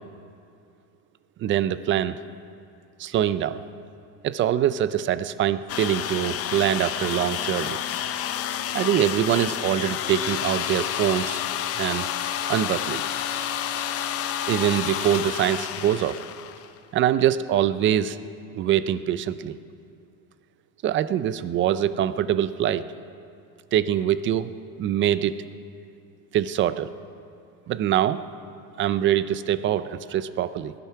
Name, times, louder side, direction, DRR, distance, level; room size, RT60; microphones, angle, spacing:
voice 1, 1.4-2.2 3.0-3.6 4.2-7.8 8.7-11.4 11.8-12.1 12.5-13.0 14.5-16.2 16.9-18.2 18.5-19.6 20.8-22.8 23.7-24.5 24.8-25.3 26.3-26.9 27.7-28.2 28.8-30.7, right 11 dB, 30° right, 14 dB, 0.4 m, -24 dB
sound 1, 5.7-16.8, left 10 dB, 35° left, 0.7 m, -29 dB
19.0 x 12.0 x 5.7 m, 2.5 s
supercardioid pair, 130°, 44 cm